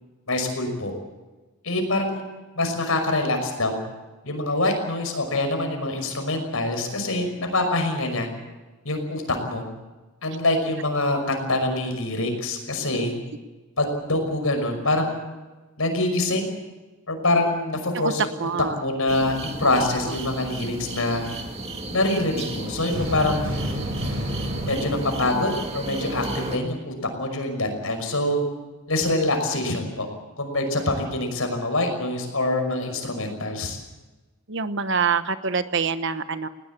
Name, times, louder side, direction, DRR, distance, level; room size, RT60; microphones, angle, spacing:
voice 1, 0.3-0.9 1.6-2.2 2.5-3.8 4.2-8.3 8.8-9.6 10.2-13.1 13.8-15.2 15.8-16.5 17.1-18.3 18.7-19.3 19.6-21.3 21.9-23.5 24.6-28.4 28.9-30.1 30.4-33.8, left 2 dB, 70° left, 5 dB, 5.7 m, -25 dB
voice 2, 18.4-18.7 19.8-20.1 34.5-36.5, right 5 dB, 55° right, 11 dB, 1.1 m, -26 dB
sound 1, 19.1-26.6, right 2 dB, 30° right, 2.3 m, -33 dB
sound 2, 22.9-26.4, equal, 75° right, 5.3 m, -31 dB
20.0 x 19.0 x 8.4 m, 1.2 s
head